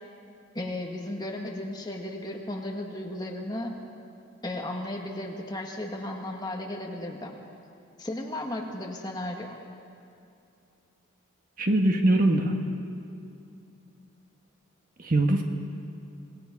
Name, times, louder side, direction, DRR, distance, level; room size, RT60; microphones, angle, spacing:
voice 1, 0.5-3.7 4.4-7.3 8.0-9.6, left 1 dB, 20° left, 0 dB, 1.9 m, -35 dB
voice 2, 11.6-12.5 15.0-15.4, right 1 dB, 40° right, 3 dB, 1.5 m, -22 dB
26.5 x 18.5 x 5.4 m, 2.6 s
head